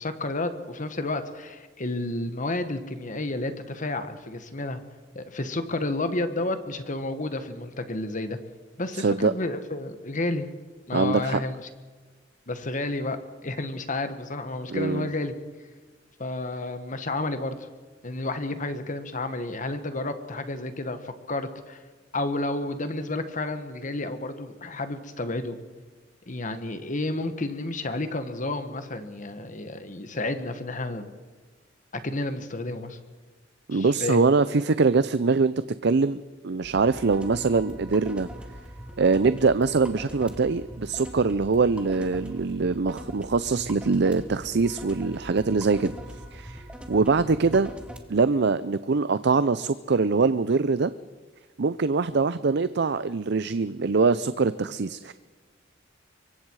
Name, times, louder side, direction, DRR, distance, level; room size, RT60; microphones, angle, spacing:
voice 1, 0.0-4.8 5.2-8.4 8.8-10.5 10.9-11.5 12.5-15.3 16.2-17.7 18.0-21.8 22.1-25.6 26.3-31.1 32.0-33.0 33.7-34.2 47.2-47.3, left 2 dB, 45° left, 9 dB, 1.7 m, -31 dB
voice 2, 8.9-9.3 10.9-11.4 14.7-15.1 33.7-35.5 35.8-38.3 39.0-45.9 46.3-46.6 46.9-47.7 48.1-50.9 51.6-55.1, right 4 dB, 60° right, 14 dB, 0.6 m, -23 dB
sound 1, 36.6-48.0, equal, 5° right, 2.0 m, -42 dB
25.0 x 23.5 x 4.8 m, 1.4 s
head